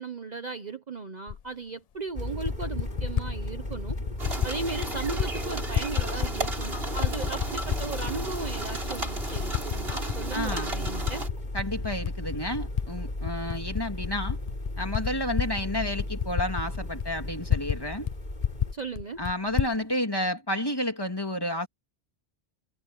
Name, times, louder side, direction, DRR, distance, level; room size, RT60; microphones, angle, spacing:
voice 1, 0.0-4.0 4.3-11.2 18.7-19.2, right 4 dB, 40° right, 1.0 m, -36 dB
Typing, 1.3-1.4 2.2-3.3 3.9-4.5 4.8-5.3 5.6-6.7 7.0-8.2 8.7-8.8 9.3-10.2 10.5-12.9 13.2-17.8 18.0-18.1 18.4-19.7, left 9 dB, 55° left, 0.4 m, -30 dB
sound 1, 2.1-18.7, left 1 dB, 40° left, 3.8 m, -35 dB
sound 2, 4.2-11.3, right 2 dB, 55° right, 4.4 m, -34 dB
voice 2, 10.3-10.7 11.5-14.4 14.8-18.1 19.2-21.7, left 1 dB, 20° left, 2.9 m, -31 dB
omnidirectional pair, 1.2 m